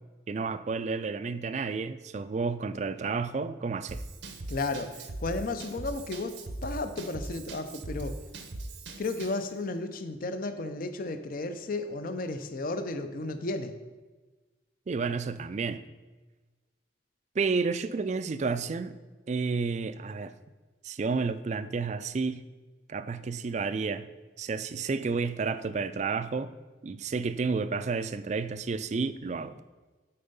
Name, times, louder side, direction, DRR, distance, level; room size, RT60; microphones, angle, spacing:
voice 1, 0.3-4.0 14.9-15.8 17.4-19.0 19.3-20.3 20.8-22.4 22.9-24.1 24.4-26.5 26.8-29.6, right 4 dB, 40° right, 13 dB, 0.3 m, -31 dB
Drum kit / Drum, 3.9-9.5, right 2 dB, 70° right, 0.8 m, -40 dB
voice 2, 4.5-6.4 6.6-8.2 9.0-13.8, left 2 dB, 50° left, 9 dB, 0.5 m, -33 dB
8.7 x 4.4 x 5.4 m, 1.3 s
head